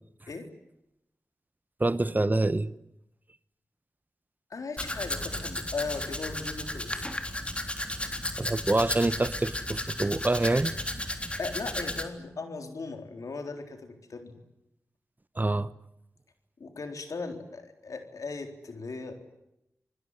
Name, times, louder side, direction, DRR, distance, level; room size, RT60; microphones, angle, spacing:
voice 1, 1.8-2.7 8.4-10.7 15.4-15.7, right 2 dB, 30° right, 1.2 m, -26 dB
voice 2, 4.5-7.1 11.4-14.4 16.6-19.1, left 4 dB, 75° left, 4.0 m, -37 dB
Domestic sounds home sounds, 4.8-12.0, left 1 dB, 20° left, 3.5 m, -34 dB
27.0 x 20.5 x 9.9 m
cardioid pair, 40°, 6 cm